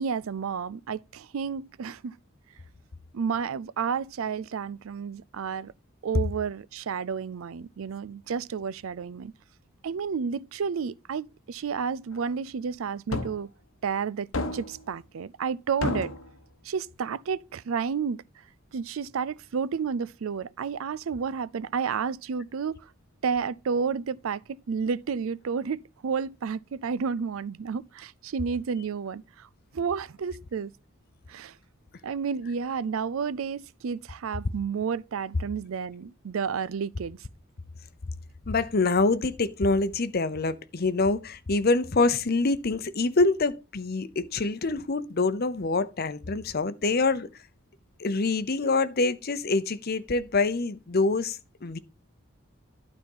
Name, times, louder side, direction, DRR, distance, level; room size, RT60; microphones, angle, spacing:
voice 1, 0.0-2.1 3.1-5.7 6.0-9.3 9.8-13.5 13.8-16.1 16.6-18.2 18.7-22.8 23.2-29.5 29.7-30.7 31.3-31.5 32.0-37.2, right 6 dB, 75° right, 0.4 m, -31 dB
sound 1, 13.1-13.4 14.3-14.8 15.8-16.3, left 2 dB, 75° left, 1.1 m, -30 dB
voice 2, 38.5-47.3 48.0-51.8, left 3 dB, 50° left, 0.7 m, -25 dB
12.0 x 4.3 x 5.5 m
head